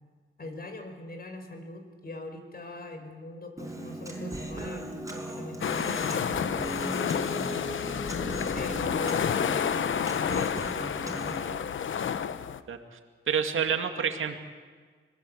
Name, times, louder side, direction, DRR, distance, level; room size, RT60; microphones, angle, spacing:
voice 1, 0.4-4.9 5.1-7.2 8.5-12.3, left 2 dB, 45° left, 6 dB, 5.0 m, -41 dB
Human voice, 3.6-11.6, right 1 dB, 15° right, 5.3 m, -37 dB
sound 1, 5.6-12.6, left 8 dB, 70° left, 1.0 m, -30 dB
voice 2, 12.7-13.0 13.3-14.4, right 7 dB, 75° right, 6 dB, 2.1 m, -28 dB
26.0 x 20.0 x 8.0 m, 1.6 s
cardioid pair, 85°, 21 cm